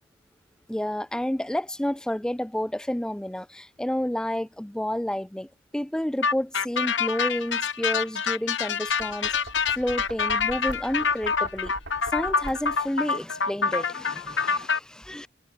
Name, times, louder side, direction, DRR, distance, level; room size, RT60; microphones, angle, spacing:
voice 1, 0.7-9.3 9.7-11.7 12.1-15.3, left 1 dB, 5° left, 0.3 m, -30 dB
sound 1, 6.2-14.8, left 5 dB, 85° left, 0.9 m, -26 dB
Knock, 8.9-13.0, right 1 dB, 70° right, 4.6 m, -43 dB
head